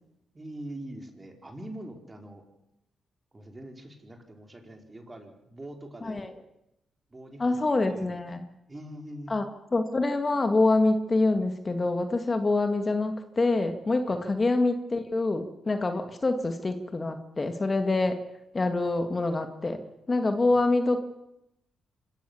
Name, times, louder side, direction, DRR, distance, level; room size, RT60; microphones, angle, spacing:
voice 1, 0.3-2.4 3.3-6.3 7.1-8.4 8.7-9.3 14.1-14.2, right 1 dB, 25° right, 4 dB, 4.6 m, -43 dB
voice 2, 7.4-8.5 9.3-9.4 9.7-18.2 18.5-19.8 20.1-21.0, left 2 dB, 35° left, 7 dB, 2.0 m, -26 dB
25.5 x 14.5 x 7.1 m, 0.83 s
supercardioid pair, 55°, 0 cm